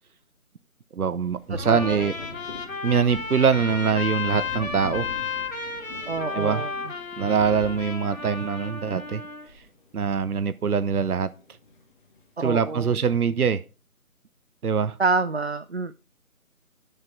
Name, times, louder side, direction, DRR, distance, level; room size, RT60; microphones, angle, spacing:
voice 1, 0.9-2.2 2.8-5.1 6.3-6.7 7.2-9.2 9.9-11.3 12.4-13.6 14.6-15.0, right 6 dB, 80° right, 0.8 m, -23 dB
Thunder, 1.0-10.8 11.1-12.3, left 2 dB, 35° left, 1.8 m, -43 dB
Breathing, 1.2-9.7, left 1 dB, 5° right, 1.2 m, -50 dB
Trumpet, 1.6-9.5, left 4 dB, 65° left, 2.6 m, -33 dB
voice 2, 1.7-2.1 6.1-6.7 12.4-13.0 15.0-15.9, right 3 dB, 50° right, 0.5 m, -27 dB
10.5 x 6.6 x 4.5 m
figure-of-eight pair, 160°, 44 cm